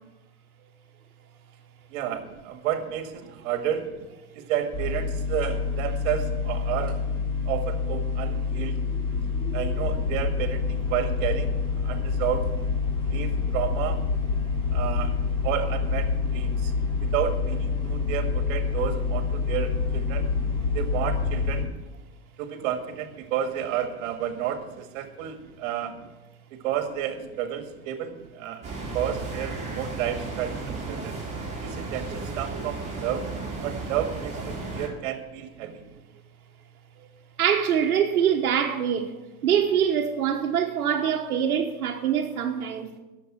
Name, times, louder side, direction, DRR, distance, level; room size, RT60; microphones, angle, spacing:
voice 1, 1.9-3.9 4.3-7.0 7.5-8.8 9.5-11.6 11.8-12.5 13.1-14.0 14.7-15.1 15.4-16.7 17.0-20.3 20.7-21.7 22.4-26.0 26.5-28.6 28.9-31.2 31.6-33.3 33.6-35.8, right 10 dB, 55° right, 1.9 m, -31 dB
sound 1, 4.7-21.6, left 5 dB, 10° left, 3.4 m, -27 dB
sound 2, 28.6-34.9, right 3 dB, 15° right, 4.4 m, -34 dB
voice 2, 37.4-39.1 39.4-42.9, right 8 dB, 85° right, 1.2 m, -24 dB
11.0 x 7.0 x 8.9 m
hypercardioid pair, 115°, 43 cm